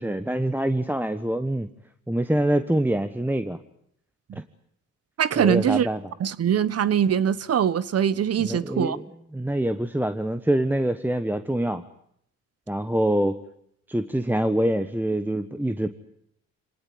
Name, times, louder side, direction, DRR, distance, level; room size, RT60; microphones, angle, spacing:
voice 1, 0.0-1.7 2.1-3.6 5.4-6.0 8.4-9.0 9.3-11.8 12.7-13.4 13.9-15.9, right 1 dB, 5° right, 1.2 m, -25 dB
voice 2, 5.2-5.9 6.2-9.0, right 8 dB, 55° right, 1.1 m, -22 dB
26.5 x 19.0 x 9.3 m
cardioid pair, 90°, 30 cm